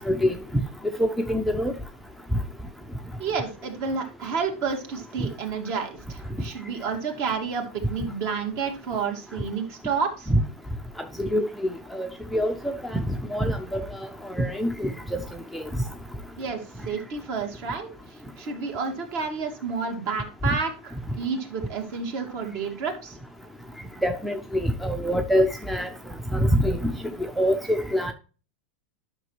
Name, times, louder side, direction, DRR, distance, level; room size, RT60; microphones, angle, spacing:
voice 1, 1.0-1.7 10.3-10.4 11.2-11.5 11.9-13.0 13.3-13.8 14.4-14.9 15.5-15.6 24.0-25.9 26.3-26.8 27.2-28.1, equal, ahead, 0.6 m, -24 dB
voice 2, 3.2-10.3 16.4-17.9 18.4-23.2, right 5 dB, 50° right, 2.5 m, -30 dB
10.5 x 6.1 x 3.1 m
supercardioid pair, 140°, 6 cm